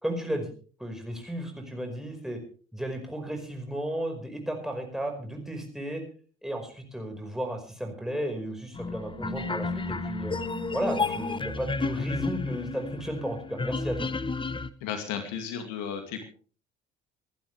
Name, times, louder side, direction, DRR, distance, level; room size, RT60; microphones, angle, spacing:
voice 1, 0.0-0.5 0.8-2.4 2.7-6.0 6.4-10.4 10.7-14.1, right 1 dB, ahead, 3 dB, 5.2 m, -34 dB
sound 1, 8.7-14.7, left 3 dB, 15° left, 1.0 m, -32 dB
Piano, 9.1-14.3, right 1 dB, 35° right, 3.6 m, -44 dB
voice 2, 14.8-16.2, left 7 dB, 60° left, 6 dB, 2.4 m, -34 dB
26.5 x 11.5 x 3.4 m, 0.40 s
figure-of-eight pair, 55°, 34 cm